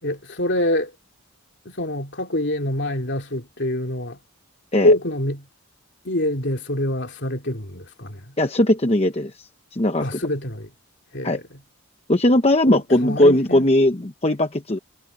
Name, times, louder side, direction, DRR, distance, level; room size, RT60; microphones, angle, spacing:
voice 1, 0.0-0.9 1.6-4.2 4.8-5.5 6.0-8.4 10.0-10.7 11.1-11.6 12.7-13.7, left 1 dB, 55° left, 3.0 m, -25 dB
voice 2, 8.4-10.1 11.2-11.4 12.1-14.8, left 1 dB, 30° left, 0.9 m, -19 dB
head